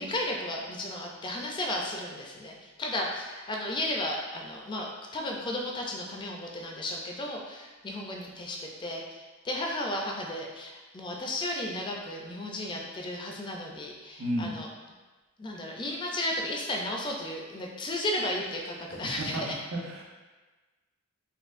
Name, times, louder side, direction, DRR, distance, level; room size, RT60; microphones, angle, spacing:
voice 1, 0.0-14.7 15.4-19.6, left 1 dB, 20° left, 0 dB, 0.3 m, -34 dB
voice 2, 14.2-14.5 19.0-19.4 19.7-20.0, right 1 dB, 75° right, -3 dB, 0.8 m, -32 dB
4.2 x 2.6 x 2.5 m, 1.3 s
head